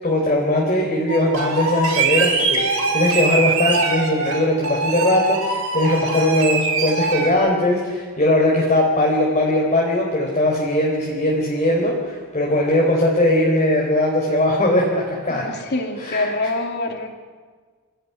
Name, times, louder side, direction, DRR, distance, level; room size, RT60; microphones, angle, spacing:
voice 1, 0.0-15.5 16.0-16.3, left 1 dB, 30° left, -2 dB, 4.4 m, -19 dB
sound 1, 1.1-7.3, right 3 dB, 85° right, 5.4 m, -22 dB
voice 2, 15.3-17.1, left 2 dB, 50° left, 3 dB, 3.1 m, -25 dB
27.5 x 17.0 x 9.9 m, 1.5 s
head